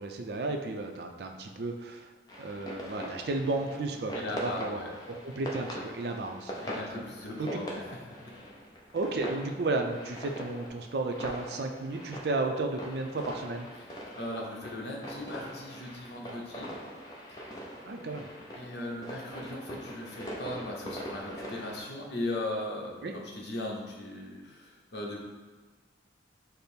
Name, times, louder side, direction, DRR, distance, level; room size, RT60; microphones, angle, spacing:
voice 1, 0.0-2.1 2.4-4.8 5.1-7.1 7.4-7.7 8.9-13.7 17.9-18.3 23.0-23.1, right 2 dB, 60° right, 4 dB, 0.4 m, -33 dB
sound 1, 2.3-21.8, equal, 20° left, 0.5 m, -42 dB
voice 2, 4.1-4.9 6.6-7.8 8.3-8.4 14.1-16.7 18.5-25.2, left 1 dB, 65° left, -1 dB, 0.8 m, -38 dB
5.1 x 2.0 x 4.4 m, 1.4 s
head